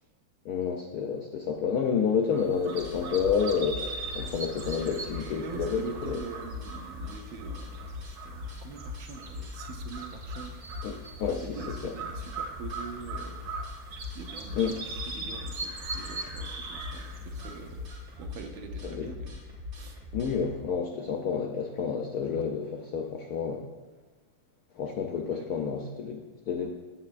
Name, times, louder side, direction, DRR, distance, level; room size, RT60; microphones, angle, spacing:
voice 1, 0.4-6.2 10.8-10.9 11.2-11.9 14.6-14.8 18.8-19.1 20.1-23.6 24.7-26.7, left 6 dB, 80° left, 3 dB, 0.8 m, -30 dB
sound 1, 2.3-18.4, right 3 dB, 55° right, 1.2 m, -41 dB
sound 2, 2.8-20.6, left 4 dB, 35° right, 1.8 m, -41 dB
voice 2, 5.4-10.6 11.4-13.4 14.1-17.8 18.2-19.4 19.7-20.0 25.3-25.5, right 6 dB, 80° right, 4 dB, 1.4 m, -44 dB
8.7 x 7.6 x 2.5 m, 1.3 s
omnidirectional pair, 2.2 m